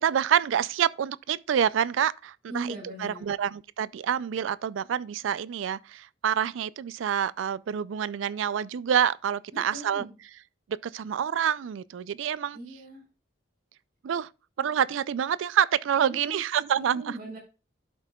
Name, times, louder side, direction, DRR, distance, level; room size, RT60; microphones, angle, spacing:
voice 1, 0.0-2.7 3.0-10.1 10.8-12.6 14.0-14.3 14.6-17.1, right 9 dB, 80° right, 0.3 m, -27 dB
voice 2, 2.5-3.3 9.5-10.2 12.5-13.0 16.0-16.4 16.8-17.4, right 1 dB, 50° right, 5.0 m, -40 dB
12.5 x 5.6 x 2.3 m
head